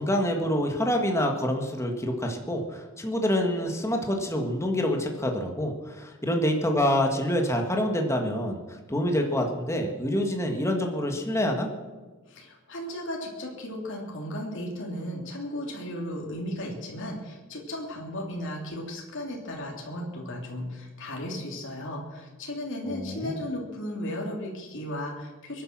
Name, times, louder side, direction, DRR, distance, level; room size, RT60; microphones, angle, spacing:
voice 1, 0.0-11.7 22.9-23.4, equal, 15° left, 2 dB, 1.7 m, -27 dB
voice 2, 12.3-25.6, left 1 dB, 55° left, -1 dB, 3.2 m, -35 dB
22.5 x 10.5 x 6.1 m, 1.3 s
head